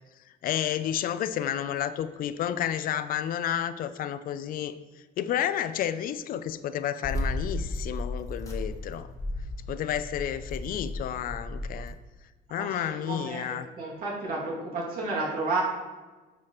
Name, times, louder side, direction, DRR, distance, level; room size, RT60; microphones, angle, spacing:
voice 1, 0.4-4.8 5.2-9.1 9.7-12.0 12.5-13.7, left 10 dB, 60° left, 13 dB, 0.4 m, -31 dB
sound 1, 7.0-11.9, left 1 dB, 20° left, 1.3 m, -34 dB
voice 2, 12.6-15.6, right 3 dB, 60° right, -4 dB, 2.2 m, -32 dB
9.4 x 4.9 x 2.9 m, 1.2 s
cardioid pair, 110°, 17 cm